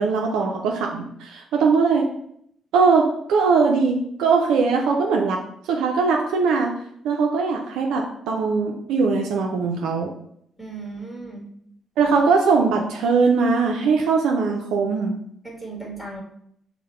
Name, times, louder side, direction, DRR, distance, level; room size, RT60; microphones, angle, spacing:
voice 1, 0.0-2.1 2.7-5.4 5.7-6.7 7.0-10.1 12.0-15.1, right 4 dB, 90° right, 1 dB, 0.5 m, -20 dB
voice 2, 10.6-11.5 15.4-16.2, right 3 dB, ahead, -2 dB, 1.5 m, -36 dB
5.5 x 2.2 x 4.3 m, 0.70 s
cardioid pair, 90°, 0 cm